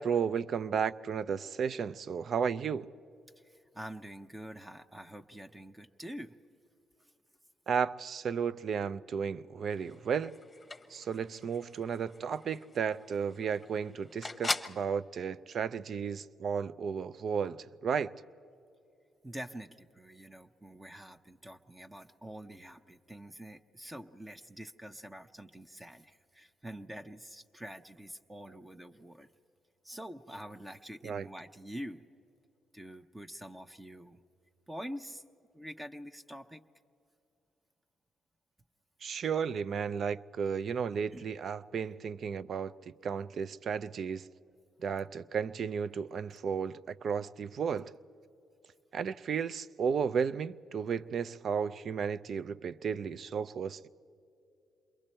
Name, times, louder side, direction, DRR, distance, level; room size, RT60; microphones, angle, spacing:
voice 1, 0.0-2.9 7.7-10.4 10.9-18.1 31.0-31.3 39.0-44.3 44.8-47.9 48.9-53.9, right 6 dB, 60° right, 0.5 m, -33 dB
voice 2, 3.4-6.3 19.2-29.3 29.8-32.0 32.7-34.2 34.7-35.2 35.5-36.6 41.1-41.2, equal, 15° right, 0.8 m, -46 dB
sound 1, 9.7-14.9, left 3 dB, 30° left, 0.9 m, -41 dB
28.0 x 22.5 x 4.4 m
supercardioid pair, 55°, 0 cm